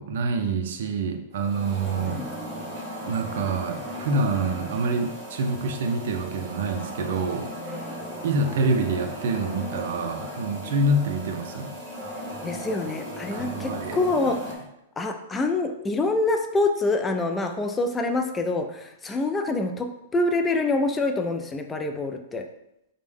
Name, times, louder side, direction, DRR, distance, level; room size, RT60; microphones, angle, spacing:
voice 1, 0.0-2.2 3.0-7.5 8.2-11.8 13.3-14.0, right 2 dB, 65° right, 4 dB, 0.5 m, -26 dB
sound 1, 1.3-14.5, equal, 20° right, 1.1 m, -37 dB
voice 2, 2.0-2.3 7.7-8.0 10.6-10.8 12.4-14.4 15.0-22.4, left 2 dB, 10° left, 5 dB, 0.3 m, -26 dB
5.1 x 2.1 x 3.5 m, 0.84 s
hypercardioid pair, 155°, 0 cm